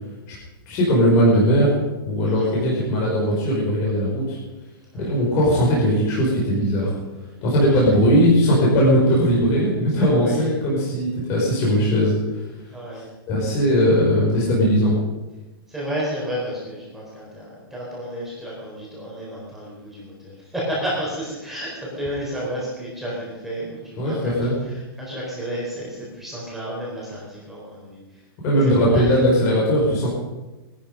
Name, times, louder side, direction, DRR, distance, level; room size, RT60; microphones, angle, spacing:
voice 1, 0.6-4.4 4.9-6.9 7.4-12.4 13.3-14.9 24.0-24.5 28.4-30.1, equal, 25° left, -5 dB, 5.1 m, -19 dB
voice 2, 12.7-13.1 15.7-28.2 28.5-29.1, equal, ahead, -6 dB, 4.3 m, -32 dB
19.5 x 13.0 x 5.3 m, 1.1 s
hypercardioid pair, 175°, 13 cm